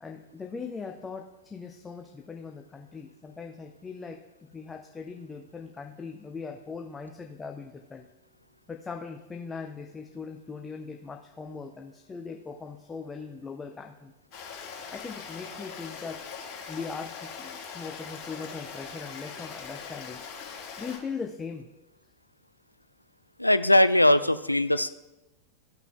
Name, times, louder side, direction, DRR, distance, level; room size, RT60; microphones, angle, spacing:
voice 1, 0.0-4.2 4.5-8.0 8.7-14.1 14.9-16.2 16.7-20.2 20.8-21.7, left 5 dB, 15° left, 3 dB, 0.5 m, -40 dB
Stream, 14.3-21.0, left 6 dB, 40° left, 2.3 m, -41 dB
voice 2, 23.4-24.9, left 1 dB, 85° left, 13 dB, 0.3 m, -20 dB
14.0 x 5.7 x 2.3 m, 0.97 s
figure-of-eight pair, 90°, 0 cm